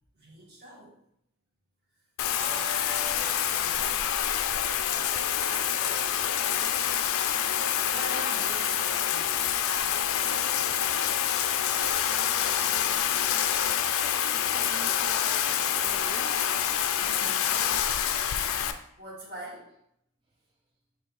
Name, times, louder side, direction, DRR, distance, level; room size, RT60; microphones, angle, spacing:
voice 1, 0.1-0.9 2.4-4.1 4.8-5.4 5.7-7.1 7.9-9.4 9.6-10.1 10.5-10.9 16.7-18.0 19.0-19.7, equal, 45° right, -4 dB, 1.6 m, -44 dB
Bathtub (filling or washing), 2.2-18.7, left 9 dB, 60° left, 0.3 m, -27 dB
voice 2, 12.6-13.1 14.5-16.4, right 2 dB, 20° right, 0 dB, 0.4 m, -46 dB
4.5 x 2.6 x 4.5 m, 0.75 s
head